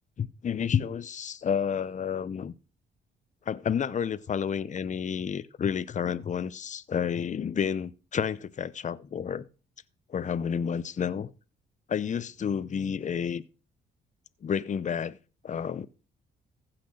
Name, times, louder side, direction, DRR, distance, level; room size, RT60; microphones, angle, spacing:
voice 1, 0.2-2.5 3.5-9.4 10.1-11.3 11.9-13.4 14.4-15.2 15.4-15.9, left 7 dB, 40° left, 0.7 m, -30 dB
15.0 x 5.9 x 6.3 m
cardioid pair, 90°, 20 cm